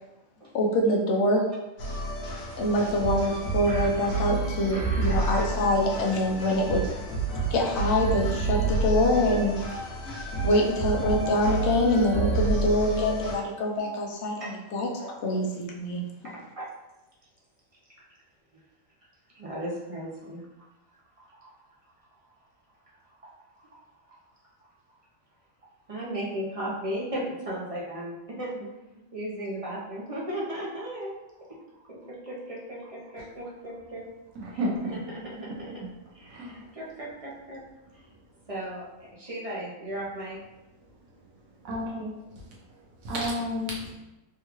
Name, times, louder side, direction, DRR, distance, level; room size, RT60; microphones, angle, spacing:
voice 1, 0.5-1.4 2.6-6.8 7.5-9.5 10.1-14.9 15.2-16.0, left 1 dB, 65° left, -1 dB, 0.9 m, -25 dB
sound 1, 1.8-13.4, right 3 dB, 85° left, 1.2 m, -29 dB
voice 2, 3.7-4.1 4.7-5.4 12.8-13.0 14.4-14.5 15.0-15.1 16.2-16.7 19.3-20.4 21.4-21.5 23.3-23.7 25.9-28.7 29.1-31.1 31.4-31.5 31.9-34.0 34.9-35.8 36.1-37.6 37.9-38.1 38.5-40.4, right 1 dB, 40° right, -5 dB, 0.5 m, -36 dB
voice 3, 34.4-35.0 36.3-36.5 41.6-42.1 43.0-44.0, equal, 90° right, -3 dB, 1.3 m, -31 dB
3.5 x 2.4 x 3.0 m, 1.0 s
omnidirectional pair, 1.4 m